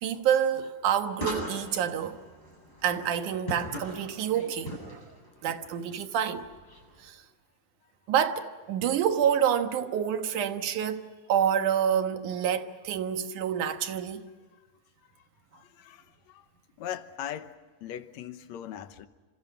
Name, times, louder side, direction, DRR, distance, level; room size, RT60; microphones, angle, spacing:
voice 1, 0.0-2.2 2.8-5.2 5.4-6.5 7.0-7.2 8.1-14.3, right 9 dB, 75° right, 2.8 m, -28 dB
sound 1, 1.1-7.1, equal, 10° left, 8.0 m, -41 dB
voice 2, 15.1-16.5 16.8-19.1, left 10 dB, 70° left, 2.1 m, -41 dB
28.5 x 26.5 x 5.9 m
omnidirectional pair, 3.6 m